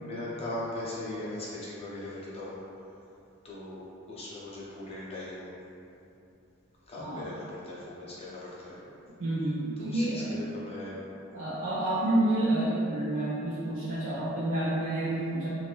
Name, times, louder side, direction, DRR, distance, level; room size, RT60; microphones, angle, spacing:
voice 1, 0.0-2.6 3.4-3.8 4.1-5.5 6.9-8.8 9.8-11.0 14.9-15.3, left 1 dB, 30° left, -7 dB, 0.6 m, -39 dB
voice 2, 7.0-7.3 9.2-10.3 11.3-15.5, right 1 dB, 70° right, -9 dB, 0.5 m, -29 dB
2.6 x 2.4 x 3.2 m, 2.8 s
head